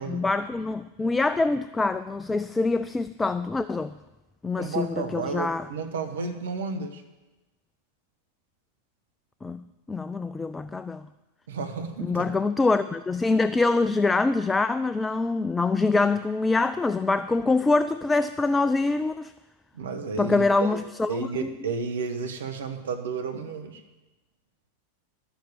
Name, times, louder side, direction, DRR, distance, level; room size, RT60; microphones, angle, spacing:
voice 1, 0.0-3.9 4.4-5.7 9.4-11.1 12.0-19.3 20.2-21.5, left 3 dB, 10° left, 12 dB, 0.3 m, -25 dB
voice 2, 4.6-7.0 11.5-12.4 19.7-20.8 21.1-23.8, right 5 dB, 60° right, 6 dB, 1.4 m, -32 dB
11.5 x 7.2 x 8.9 m, 1.1 s
figure-of-eight pair, 90°, 0 cm